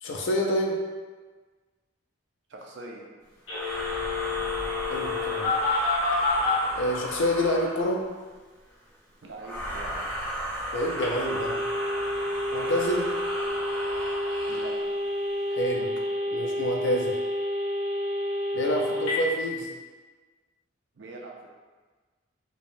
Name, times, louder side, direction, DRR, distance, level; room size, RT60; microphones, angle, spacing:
voice 1, 0.0-0.8 4.8-5.6 6.8-8.0 10.7-11.6 12.5-13.1 15.5-15.9 16.3-17.2 18.5-19.7, equal, 70° left, 1 dB, 0.4 m, -27 dB
voice 2, 2.5-3.1 9.2-10.1 14.4-14.8 21.0-21.5, right 2 dB, 65° right, -1 dB, 0.4 m, -42 dB
Telephone, 3.5-6.6 11.0-19.2, left 2 dB, 85° left, 1.1 m, -29 dB
sound 1, 3.5-8.0 9.4-14.9, equal, 10° left, 0.5 m, -35 dB
3.2 x 2.0 x 2.6 m, 1.3 s
head